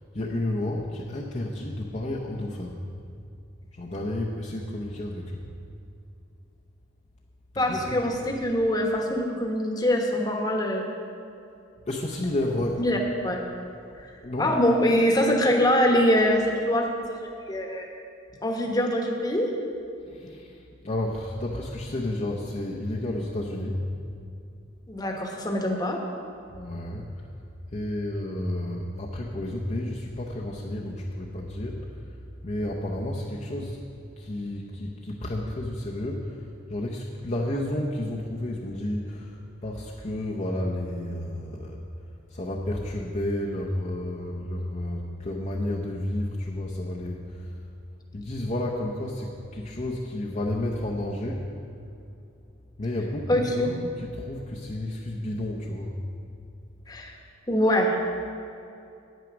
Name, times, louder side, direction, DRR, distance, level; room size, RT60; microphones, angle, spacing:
voice 1, 0.1-2.8 3.7-5.4 7.5-8.1 11.9-12.8 14.2-14.6 20.1-23.8 26.5-27.1 27.7-32.2 32.4-33.8 34.2-41.8 42.3-47.6 48.1-51.5 52.8-56.0, left 1 dB, 35° left, -3 dB, 0.8 m, -31 dB
voice 2, 7.6-10.8 12.8-13.0 13.2-13.4 14.0-14.1 14.4-17.0 17.5-17.9 18.4-19.5 24.9-26.0 53.3-53.7 56.9-57.1 57.5-57.9, left 1 dB, 20° left, 1 dB, 1.2 m, -23 dB
9.2 x 9.1 x 6.2 m, 2.7 s
head